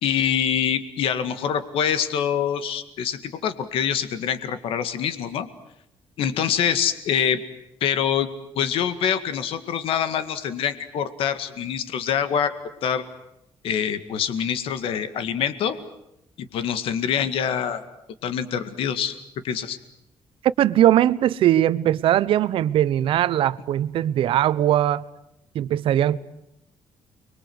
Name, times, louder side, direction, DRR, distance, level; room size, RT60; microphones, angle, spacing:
voice 1, 0.0-5.5 6.2-7.4 7.8-8.3 8.6-12.5 12.8-13.0 13.6-15.8 16.4-17.8 18.2-19.2 19.4-19.8, left 8 dB, 70° left, 1.9 m, -25 dB
voice 2, 20.6-25.0 25.5-26.2, right 12 dB, 65° right, 0.9 m, -20 dB
29.5 x 23.0 x 8.0 m
cardioid pair, 165°, 10 cm